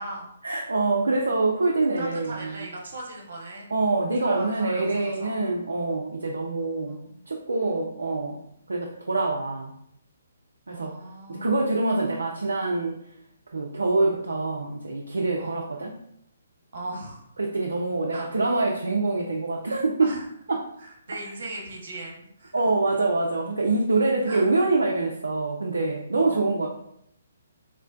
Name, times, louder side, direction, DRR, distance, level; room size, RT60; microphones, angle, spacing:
voice 1, 0.4-2.6 3.7-7.0 7.3-8.4 8.7-9.8 10.7-11.0 11.3-13.0 13.5-15.9 17.4-20.1 20.5-20.7 22.5-26.7, right 3 dB, 70° right, 0 dB, 0.3 m, -25 dB
voice 2, 2.0-3.7 4.2-5.4 6.8-7.2 10.7-11.7 15.4-15.6 16.7-17.3 18.1-18.3 20.0-20.3 20.8-22.6 24.3-24.5 26.2-26.5, right 2 dB, 55° right, 0 dB, 0.8 m, -38 dB
3.7 x 2.1 x 2.4 m, 0.73 s
figure-of-eight pair, 130°, 0 cm